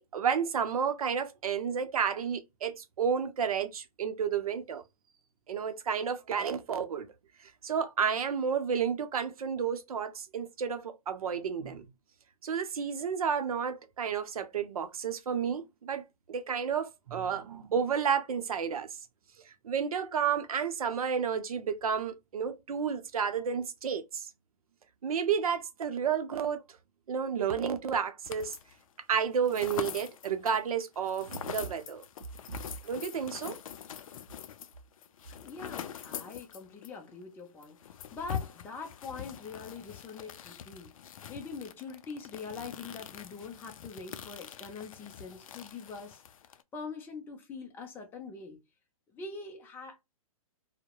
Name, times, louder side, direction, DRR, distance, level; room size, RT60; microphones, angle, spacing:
voice 1, 0.0-4.8 5.5-7.1 7.6-11.9 12.4-16.0 16.3-18.9 19.6-24.3 25.0-26.6 27.1-28.6 29.1-32.0 32.8-33.6, right 7 dB, 75° right, 0.6 m, -31 dB
sound 1, 28.2-28.8 29.1-37.0 37.2-37.3 37.6-46.6, left 9 dB, 65° left, 0.4 m, -43 dB
voice 2, 35.4-40.9 41.3-46.2 46.5-48.6 49.1-50.0, left 4 dB, 10° left, 0.5 m, -43 dB
2.7 x 2.1 x 2.2 m
hypercardioid pair, 135°, 19 cm